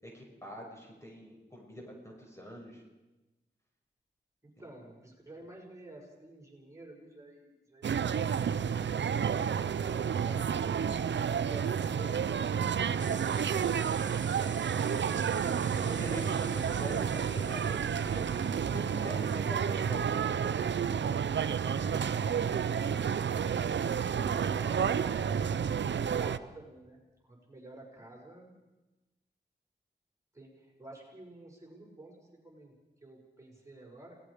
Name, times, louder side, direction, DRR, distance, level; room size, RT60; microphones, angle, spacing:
voice 1, 0.0-2.8 15.5-20.2, equal, 15° left, -1 dB, 6.5 m, -44 dB
voice 2, 4.4-9.6 23.9-28.6 30.3-32.2 32.4-32.7 33.0-34.1, right 1 dB, 15° right, -2 dB, 6.5 m, -52 dB
sound 1, 7.8-26.4, right 7 dB, 80° right, 0.7 m, -30 dB
sound 2, 13.0-19.6, right 4 dB, 45° right, 1.0 m, -49 dB
27.0 x 19.0 x 5.1 m, 1.1 s
cardioid pair, 50°, 18 cm